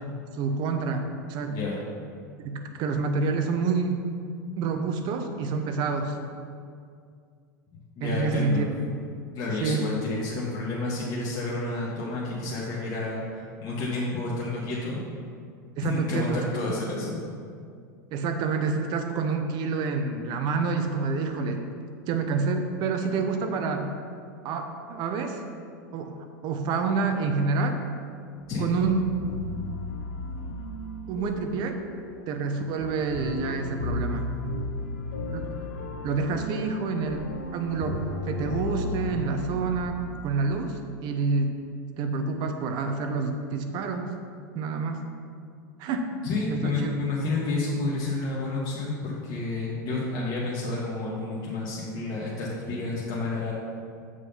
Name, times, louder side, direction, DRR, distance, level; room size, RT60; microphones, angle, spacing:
voice 1, 0.3-1.6 2.4-4.0 4.6-6.1 8.0-8.7 9.6-9.8 15.8-16.7 18.1-21.6 22.1-23.9 24.4-25.4 25.9-27.8 28.6-29.0 31.1-31.8 32.3-34.3 35.3-35.5 36.0-37.3 37.5-41.5 42.0-44.1 44.5-45.0 45.8-46.0 46.5-46.9, right 4 dB, 50° right, 6 dB, 0.9 m, -28 dB
voice 2, 1.5-1.8 8.0-8.6 9.3-15.0 15.8-17.2 28.5-28.6 46.2-53.5, left 2 dB, 40° left, -6 dB, 1.6 m, -30 dB
sound 1, 28.4-40.5, left 2 dB, 70° left, 1.1 m, -35 dB
7.5 x 4.9 x 5.7 m, 2.3 s
hypercardioid pair, 100°, 10 cm